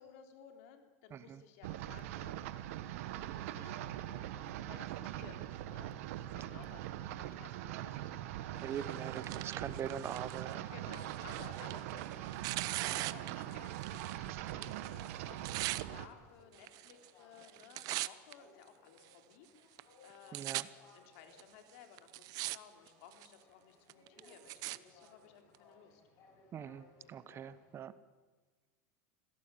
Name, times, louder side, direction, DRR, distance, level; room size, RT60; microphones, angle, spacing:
voice 1, 0.0-2.5 3.1-9.0 9.5-9.6 10.7-20.6 20.9-26.0, left 8 dB, 70° left, 6 dB, 3.6 m, -58 dB
sound 1, 1.6-16.1, right 13 dB, 75° right, 1.6 m, -42 dB
voice 2, 8.6-10.7 20.3-20.6 26.5-27.9, right 8 dB, 35° right, 15 dB, 1.1 m, -42 dB
Tearing, 8.8-14.2 14.5-15.8 16.6-17.1 17.4-18.3 19.0-19.1 19.8-19.9 20.1-20.6 21.4-21.5 22.0-22.6 22.9-23.3 23.9-24.8 25.5-25.6, right 19 dB, 55° right, 0.8 m, -41 dB
sound 2, 13.2-27.7, left 3 dB, 45° left, 6.9 m, -65 dB
25.0 x 16.5 x 9.1 m, 1.4 s
supercardioid pair, 125°, 8 cm